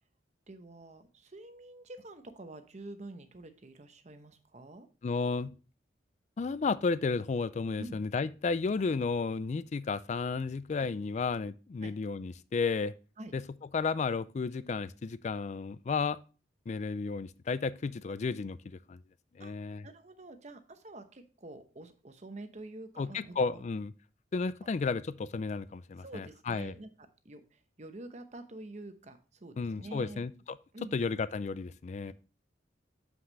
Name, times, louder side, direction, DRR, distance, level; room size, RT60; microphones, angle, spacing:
voice 1, 0.5-4.9 7.8-8.0 11.8-11.9 13.2-13.3 19.4-19.5 19.8-23.6 26.0-26.9 27.2-30.2 30.7-31.0 32.1-32.2, right 2 dB, 40° right, 0.9 m, -47 dB
voice 2, 5.0-5.5 6.4-12.9 13.3-13.4 13.7-16.2 16.7-19.0 19.4-19.9 23.0-23.9 24.3-26.7 29.6-30.3 30.9-32.1, left 4 dB, 40° left, 0.3 m, -33 dB
7.3 x 6.0 x 3.2 m
head